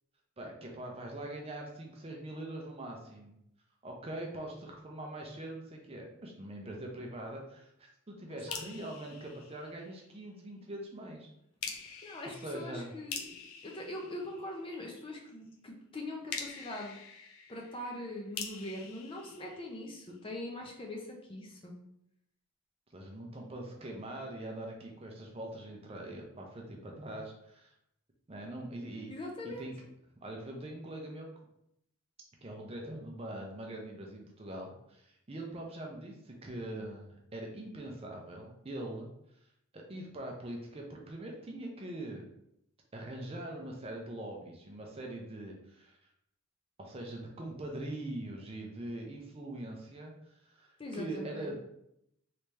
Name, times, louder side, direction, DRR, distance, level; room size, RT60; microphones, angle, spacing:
voice 1, 0.4-3.4 3.8-11.3 11.9-12.0 12.3-12.9 22.9-27.7 28.3-29.1 29.4-29.9 30.2-31.3 32.4-39.1 39.7-42.2 42.9-46.0 46.8-51.5, right 1 dB, 25° right, 1 dB, 0.5 m, -43 dB
voice 2, 8.3-8.6 11.7-17.0 17.5-21.7 29.1-29.7 50.8-51.5, left 1 dB, 25° left, 0 dB, 0.5 m, -42 dB
sound 1, 8.5-10.2 11.6-14.9 16.3-20.2, left 6 dB, 75° left, 0.5 m, -45 dB
3.3 x 2.8 x 3.2 m, 0.77 s
head